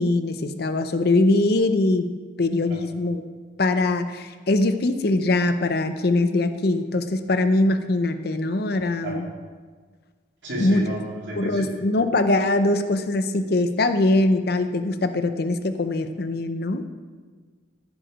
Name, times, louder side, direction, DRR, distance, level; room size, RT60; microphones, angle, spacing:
voice 1, 0.0-2.1 2.4-3.2 3.6-9.2 10.6-10.8 11.4-16.8, left 2 dB, 50° left, 8 dB, 0.6 m, -22 dB
voice 2, 10.4-11.7, right 1 dB, 70° right, -3 dB, 2.6 m, -32 dB
14.0 x 4.8 x 5.0 m, 1.5 s
head